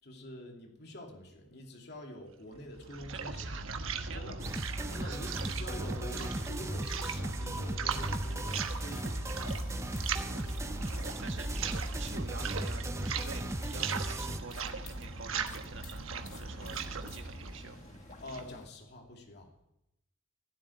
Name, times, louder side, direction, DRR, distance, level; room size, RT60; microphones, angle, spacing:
voice 1, 0.0-3.6 4.1-4.4 4.9-10.4 18.2-19.7, left 1 dB, 55° left, 1 dB, 2.7 m, -46 dB
sound 1, 2.5-18.6, right 4 dB, 90° right, 1.2 m, -39 dB
voice 2, 3.1-4.3 4.7-5.6 6.1-6.5 11.2-17.8, right 4 dB, 70° right, 5 dB, 1.7 m, -47 dB
sound 2, 4.4-14.4, right 1 dB, 15° right, 0.7 m, -37 dB
sound 3, 8.1-18.7, left 2 dB, 35° left, 1.6 m, -51 dB
16.0 x 7.8 x 9.9 m, 0.86 s
head